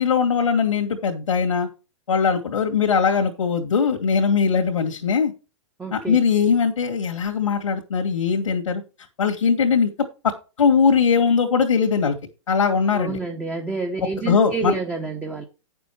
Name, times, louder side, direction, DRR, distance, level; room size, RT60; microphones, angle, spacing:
voice 1, 0.0-1.7 2.1-5.3 5.9-8.8 9.2-12.2 12.5-13.2 14.3-14.7, left 6 dB, 90° left, 2 dB, 2.3 m, -20 dB
voice 2, 5.8-6.2 12.9-15.4, right 3 dB, 5° right, 3 dB, 1.0 m, -28 dB
9.5 x 6.9 x 4.7 m, 0.31 s
hypercardioid pair, 145°, 16 cm